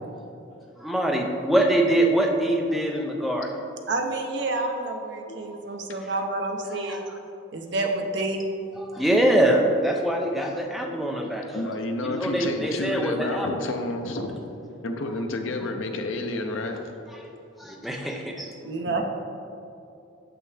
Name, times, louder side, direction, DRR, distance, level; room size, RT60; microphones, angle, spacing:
voice 1, 0.8-3.6 6.0-6.1 6.9-7.2 8.8-11.7 12.0-13.5 17.1-17.2 17.6-18.5, right 1 dB, ahead, 0 dB, 0.5 m, -24 dB
voice 2, 3.9-7.0 7.5-8.5 18.6-19.0, right 2 dB, 60° right, 2 dB, 0.7 m, -28 dB
voice 3, 11.5-14.4 14.8-17.0, left 2 dB, 85° left, 5 dB, 0.6 m, -30 dB
6.8 x 5.8 x 3.3 m, 2.7 s
head